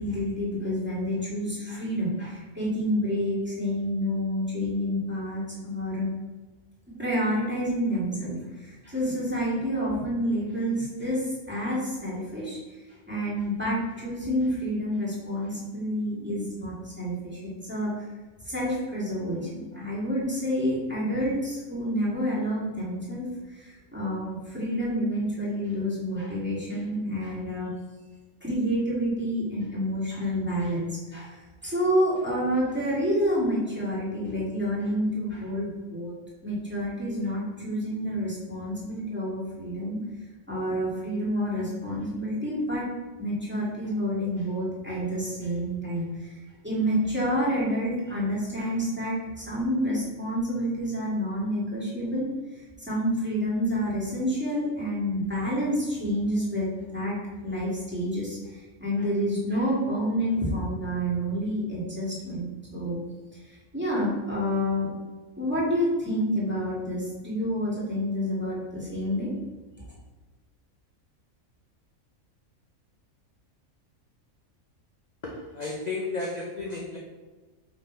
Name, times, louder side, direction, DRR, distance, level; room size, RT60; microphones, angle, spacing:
voice 1, 0.0-6.1 7.0-12.6 13.1-17.9 18.5-23.3 23.5-27.7 28.4-31.4 31.6-36.1 36.4-40.0 40.5-42.9 43.2-46.3 46.6-52.3 52.9-57.2 57.4-63.0 63.7-64.9 65.4-69.3, equal, 10° right, -8 dB, 1.9 m, -28 dB
voice 2, 75.2-77.0, left 3 dB, 45° left, -1 dB, 0.5 m, -33 dB
5.2 x 4.2 x 4.5 m, 1.3 s
omnidirectional pair, 1.5 m